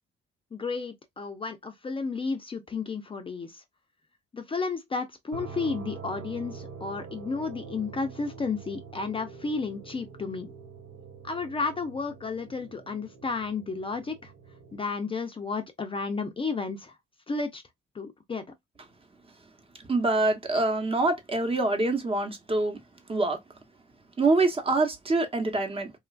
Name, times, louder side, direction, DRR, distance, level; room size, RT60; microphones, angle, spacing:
voice 1, 0.5-3.6 4.3-10.5 11.2-14.3 14.7-17.0 17.3-17.6 17.9-18.4, left 4 dB, 25° left, 0.5 m, -32 dB
sound 1, 5.3-14.8, right 5 dB, 70° right, 0.8 m, -45 dB
voice 2, 19.9-22.8 23.1-23.4 24.2-25.9, right 2 dB, 30° right, 1.0 m, -25 dB
3.0 x 2.4 x 2.3 m
cardioid pair, 90°, 20 cm